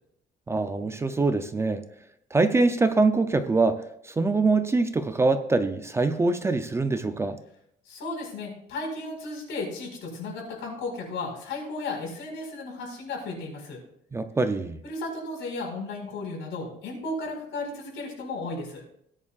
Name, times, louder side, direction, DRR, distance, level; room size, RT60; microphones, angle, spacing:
voice 1, 0.5-1.8 2.3-7.4 14.1-14.8, right 3 dB, 15° right, 9 dB, 0.4 m, -24 dB
voice 2, 7.8-13.8 14.8-18.8, left 2 dB, 85° left, 0 dB, 4.7 m, -34 dB
17.5 x 9.7 x 2.4 m, 0.72 s
cardioid pair, 175°, 19 cm